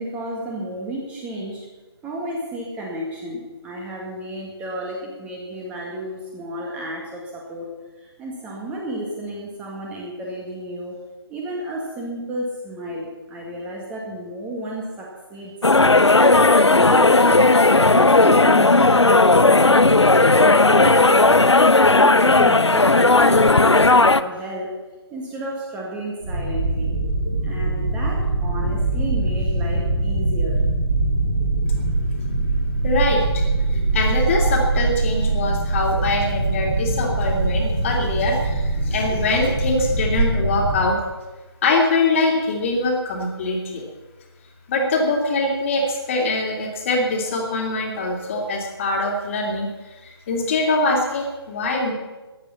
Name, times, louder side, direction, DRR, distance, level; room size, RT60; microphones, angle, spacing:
voice 1, 0.0-1.7 2.0-7.7 8.0-11.0 11.3-16.1 16.8-21.2 21.9-24.7 25.1-26.9 27.4-30.6, right 1 dB, 10° right, -2 dB, 1.8 m, -32 dB
sound 1, 15.6-24.2, left 2 dB, 85° left, 0.7 m, -14 dB
sound 2, 26.2-40.8, right 2 dB, 50° right, 6.0 m, -22 dB
voice 2, 32.8-33.4 33.7-41.0 41.6-43.8 44.7-49.7 50.0-51.9, left 2 dB, 30° left, 2 dB, 2.6 m, -23 dB
14.0 x 10.5 x 7.1 m, 1.2 s
figure-of-eight pair, 145°, 14 cm